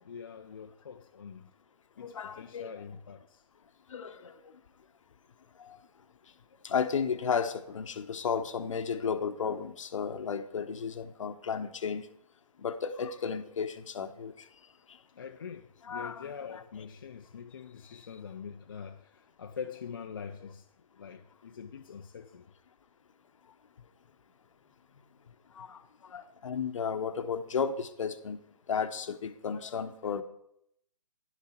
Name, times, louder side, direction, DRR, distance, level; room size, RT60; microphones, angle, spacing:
voice 1, 0.0-1.5 2.0-3.4 15.2-20.7 21.0-22.5, left 6 dB, 35° left, 0.4 m, -44 dB
voice 2, 2.0-2.8 3.9-4.3 5.6-5.8 6.6-12.1 12.6-14.5 15.8-16.6 17.9-18.0 25.5-28.4 28.7-30.2, left 6 dB, 50° left, 0.8 m, -34 dB
10.5 x 7.0 x 4.3 m
figure-of-eight pair, 150°, 21 cm